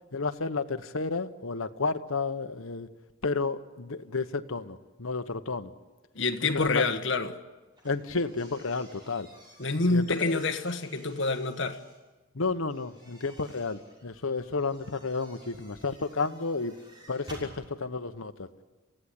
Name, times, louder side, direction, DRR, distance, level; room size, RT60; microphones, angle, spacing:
voice 1, 0.1-2.9 3.2-5.7 6.4-6.8 7.8-9.3 9.9-10.4 12.3-16.7 17.1-18.5, left 4 dB, 85° left, 1.1 m, -31 dB
voice 2, 6.1-7.4 9.6-11.8, left 3 dB, 60° left, 1.5 m, -27 dB
sound 1, 7.7-12.0 12.7-17.5, equal, 20° right, 6.2 m, -53 dB
28.0 x 16.0 x 9.9 m
head